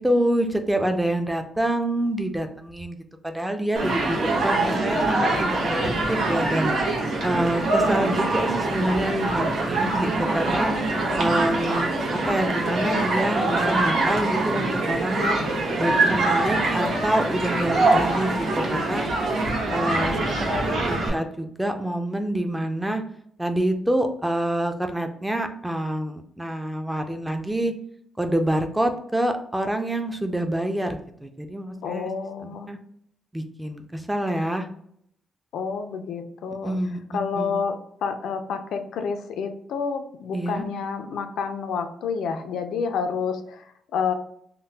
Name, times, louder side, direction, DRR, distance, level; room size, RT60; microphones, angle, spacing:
voice 1, 0.0-3.0 3.2-4.2 4.4-6.7 7.2-10.7 11.2-15.4 15.8-19.1 19.7-20.4 20.8-23.0 23.4-27.7 28.2-32.1 32.4-32.8 33.3-34.7 36.6-37.0 37.4-37.5 40.3-40.6, right 1 dB, 5° right, 6 dB, 0.4 m, -26 dB
Human group actions, 3.8-21.1, right 2 dB, 70° right, 1.0 m, -24 dB
voice 2, 19.7-20.5 31.8-32.7 35.5-36.7 37.1-44.1, left 6 dB, 85° left, 6 dB, 0.4 m, -29 dB
3.6 x 2.1 x 2.7 m, 0.69 s
cardioid pair, 150°, 0 cm